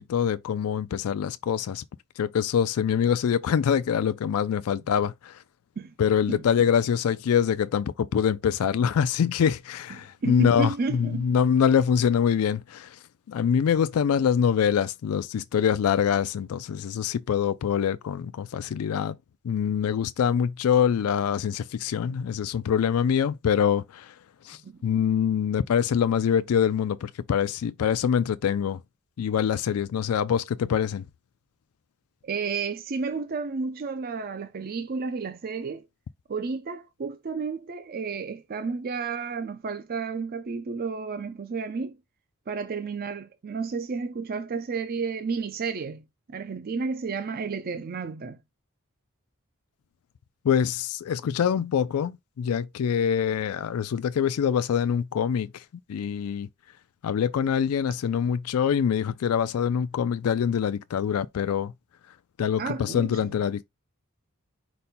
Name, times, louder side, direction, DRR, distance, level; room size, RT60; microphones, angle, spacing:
voice 1, 0.1-1.8 2.2-5.4 6.0-13.0 13.3-19.2 19.4-24.2 24.4-28.8 29.2-31.0 50.4-56.5 57.0-61.7 62.4-63.6, left 8 dB, 75° left, 0.3 m, -24 dB
voice 2, 10.2-11.2 24.6-24.8 32.2-35.8 36.3-42.0 42.5-46.0 46.3-48.4 62.6-63.4, right 4 dB, 40° right, 0.4 m, -31 dB
5.3 x 2.2 x 4.2 m
head